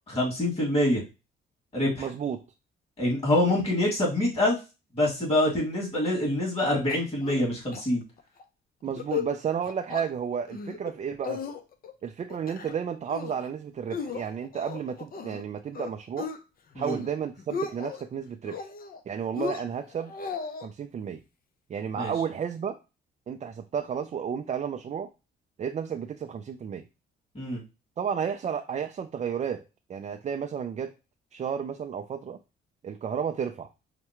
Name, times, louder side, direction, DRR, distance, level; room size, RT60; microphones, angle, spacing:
voice 1, 0.1-1.0 1.7-2.1 3.0-4.6 4.9-8.0 16.7-17.0 22.0-22.1 27.3-27.6, left 1 dB, 30° left, -3 dB, 2.3 m, -25 dB
voice 2, 2.0-2.4 8.8-11.4 12.0-16.3 16.8-18.7 19.1-20.1 20.6-21.2 21.7-22.8 23.3-25.1 25.6-26.8 28.0-29.6 29.9-30.9 31.3-32.4 32.8-33.7, right 7 dB, 35° right, 6 dB, 0.4 m, -32 dB
sound 1, 6.9-7.5 7.7-7.8 8.2-8.4 8.8-9.3 9.6-10.1 10.5-10.9 11.2-11.9 12.3-12.8 13.1-13.5 13.9-15.4 15.7-16.4 16.7-17.1 17.4-18.0 18.4-19.0 19.4-20.7, left 6 dB, 45° left, 0.6 m, -36 dB
5.6 x 2.2 x 2.9 m, 0.28 s
cardioid pair, 90°, 20 cm